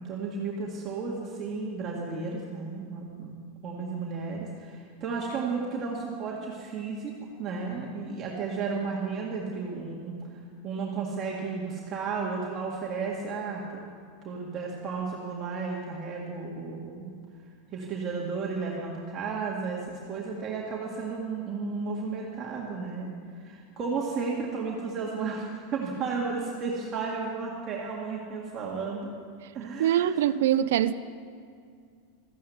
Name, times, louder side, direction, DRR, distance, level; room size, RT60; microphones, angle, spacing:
voice 1, 0.0-3.4 3.6-7.1 7.4-13.9 14.2-17.1 17.7-23.1 23.4-29.1 29.5-30.1, right 4 dB, 35° right, -3 dB, 2.0 m, -33 dB
voice 2, 29.8-30.9, right 11 dB, 75° right, 15 dB, 0.4 m, -23 dB
14.0 x 9.4 x 8.0 m, 2.2 s
hypercardioid pair, 120°, 0 cm